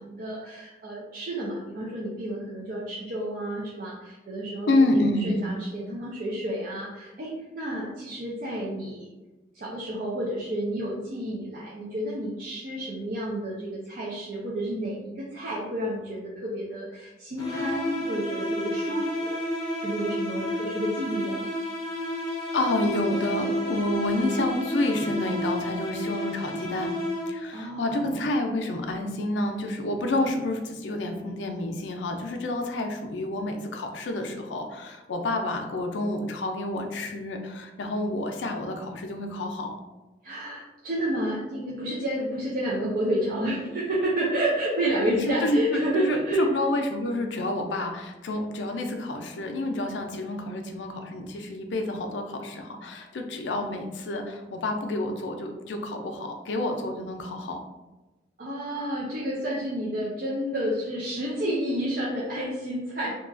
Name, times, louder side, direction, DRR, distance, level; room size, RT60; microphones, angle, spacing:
voice 1, 0.0-4.7 5.2-9.1 9.5-19.4 19.8-21.4 27.5-28.3 40.2-46.4 58.4-63.2, right 1 dB, 50° right, -5 dB, 0.4 m, -30 dB
voice 2, 4.7-5.4 22.5-26.9 27.3-39.8 45.1-57.6, left 1 dB, 90° left, 4 dB, 0.4 m, -29 dB
sound 1, 17.4-27.6, left 1 dB, 20° left, 0.5 m, -31 dB
2.8 x 2.3 x 2.4 m, 1.1 s
head